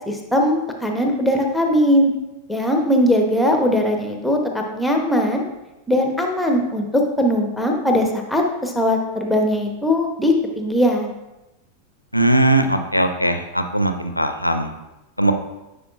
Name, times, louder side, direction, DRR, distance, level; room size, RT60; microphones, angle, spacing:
voice 1, 0.1-2.1 2.5-5.5 5.9-11.1, left 1 dB, 5° left, 2 dB, 0.9 m, -20 dB
voice 2, 12.1-14.7 15.2-15.3, right 1 dB, 90° left, 7 dB, 0.5 m, -19 dB
9.6 x 4.9 x 2.4 m, 0.99 s
figure-of-eight pair, 90°, 0 cm